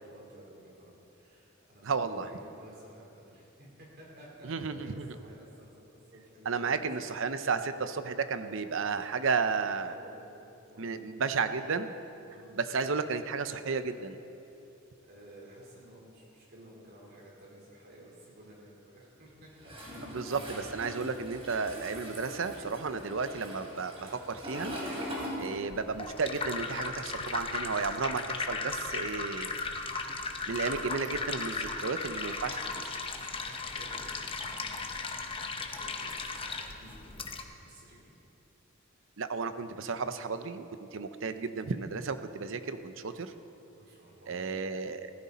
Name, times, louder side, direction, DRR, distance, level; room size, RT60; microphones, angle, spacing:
voice 1, 0.0-7.5 9.8-10.3 10.6-11.2 12.2-12.8 14.4-14.8 15.1-20.2 23.3-23.6 33.4-38.1 38.8-39.2 43.8-44.5, right 1 dB, 50° right, -4 dB, 4.0 m, -54 dB
voice 2, 1.8-2.3 4.4-5.0 6.5-9.9 10.8-11.9 12.5-14.2 20.1-24.8 25.4-29.5 30.5-32.8 39.2-43.3 44.3-45.1, right 4 dB, 70° right, 10 dB, 0.7 m, -33 dB
Toilet flush, 19.6-26.1 26.3-27.9, equal, 30° right, 3.2 m, -41 dB
sound 1, 25.7-37.4, left 4 dB, 25° left, 0.8 m, -36 dB
15.5 x 14.5 x 4.3 m, 2.8 s
head